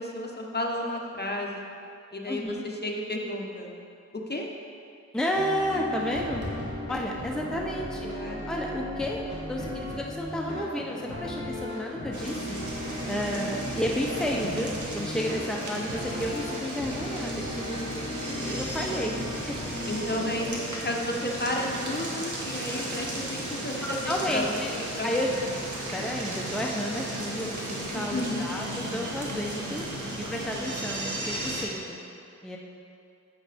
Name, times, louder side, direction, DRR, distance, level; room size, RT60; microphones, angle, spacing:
voice 1, 0.0-1.6 2.1-3.7 4.1-4.5 7.9-8.4 14.2-14.5 19.8-24.6 25.0-25.1 27.9-28.5, left 1 dB, 35° left, 0 dB, 1.1 m, -32 dB
voice 2, 2.3-2.6 5.1-6.5 6.9-8.1 8.5-12.8 13.1-19.7 23.8-24.7 25.0-25.3 25.7-32.0 32.4-32.6, equal, ahead, -1 dB, 0.8 m, -32 dB
sound 1, 5.3-20.5, left 1 dB, 70° right, 2.4 m, -36 dB
Fireworks, 6.1-11.2, equal, 35° right, 1.8 m, -45 dB
sound 2, 12.1-31.6, right 1 dB, 85° right, 1.4 m, -35 dB
10.5 x 7.8 x 3.5 m, 2.5 s
wide cardioid pair, 60°, 29 cm